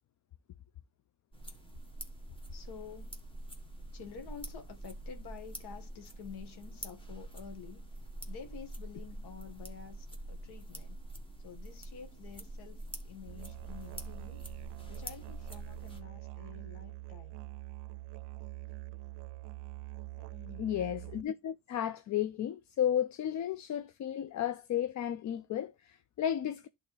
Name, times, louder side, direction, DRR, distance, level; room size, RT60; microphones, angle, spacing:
sound 1, 1.3-16.0, right 1 dB, 15° left, 1.5 m, -46 dB
voice 1, 2.5-3.2 3.9-7.9 8.3-11.0 11.4-14.4 14.9-17.5 20.2-20.6, left 6 dB, 75° left, 1.7 m, -49 dB
Musical instrument, 13.3-21.2, right 20 dB, 90° right, 0.5 m, -45 dB
voice 2, 20.6-26.7, left 10 dB, 45° left, 0.5 m, -33 dB
11.0 x 3.8 x 3.2 m
cardioid pair, 95°, 39 cm